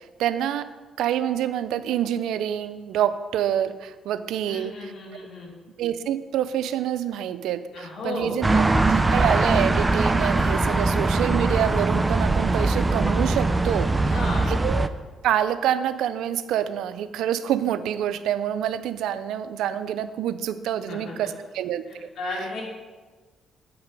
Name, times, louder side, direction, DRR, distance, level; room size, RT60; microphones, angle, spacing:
voice 1, 0.2-0.7 1.0-4.9 5.8-14.1 14.5-14.9 15.2-22.1, right 10 dB, 85° right, 13 dB, 0.4 m, -27 dB
voice 2, 4.5-5.5 7.7-8.4 14.0-14.5 20.9-21.3 22.2-22.6, left 2 dB, 65° left, -3 dB, 2.7 m, -33 dB
sound 1, 8.4-14.9, right 2 dB, 15° right, 0.4 m, -21 dB
8.2 x 5.8 x 5.3 m, 1.3 s
cardioid pair, 90°, 0 cm